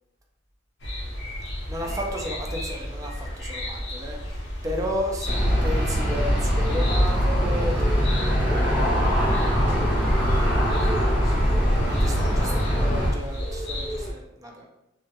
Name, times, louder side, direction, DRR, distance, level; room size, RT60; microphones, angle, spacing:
sound 1, 0.8-14.1, equal, 65° left, 0.6 m, -32 dB
voice 1, 1.7-8.3 11.8-14.7, equal, 20° right, 0 dB, 0.4 m, -33 dB
Aircraft, 5.2-13.1, equal, 30° left, 1.1 m, -22 dB
voice 2, 10.4-12.1, equal, ahead, -12 dB, 1.2 m, -43 dB
2.4 x 2.1 x 2.7 m, 0.87 s
head